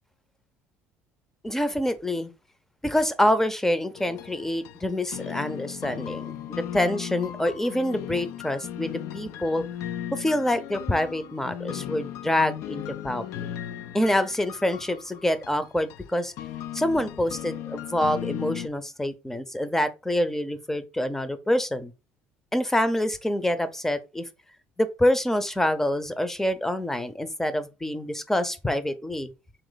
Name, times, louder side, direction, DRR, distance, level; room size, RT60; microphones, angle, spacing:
voice 1, 1.4-2.3 2.8-9.7 10.1-13.5 13.9-16.3 16.7-21.9 22.5-24.2 24.8-29.3, left 1 dB, 5° left, 0.6 m, -26 dB
sound 1, 4.0-18.7, left 11 dB, 70° left, 0.3 m, -37 dB
4.0 x 3.0 x 3.9 m
supercardioid pair, 90°, 5 cm